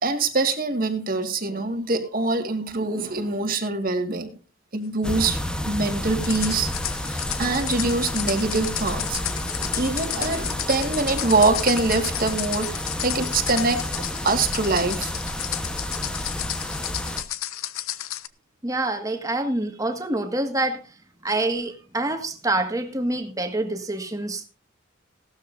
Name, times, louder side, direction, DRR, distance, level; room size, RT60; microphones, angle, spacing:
voice 1, 0.0-4.3 4.7-5.4 5.6-9.2 9.7-12.7 13.0-13.8 14.2-15.1, right 3 dB, 45° right, 5 dB, 1.8 m, -24 dB
sound 1, 5.0-17.2, equal, 5° left, 1.0 m, -30 dB
sound 2, 6.2-18.3, left 13 dB, 90° left, 0.8 m, -32 dB
voice 2, 18.6-20.8 21.2-24.5, right 2 dB, 15° right, 6 dB, 1.7 m, -26 dB
17.5 x 13.0 x 2.6 m, 0.34 s
head